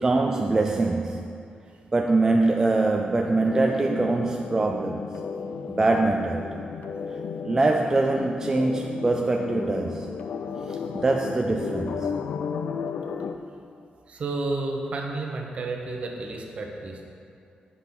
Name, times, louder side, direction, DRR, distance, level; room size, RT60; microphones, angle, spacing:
voice 1, 0.0-1.4 1.9-5.0 5.7-6.6 7.1-10.1 10.6-12.1, right 2 dB, 20° right, 2 dB, 0.3 m, -24 dB
sound 1, 3.0-13.3, left 6 dB, 70° left, 0.4 m, -34 dB
voice 2, 14.1-17.0, right 2 dB, 45° right, 1 dB, 1.0 m, -31 dB
8.0 x 5.4 x 5.9 m, 2.5 s
wide cardioid pair, 160°, 3 cm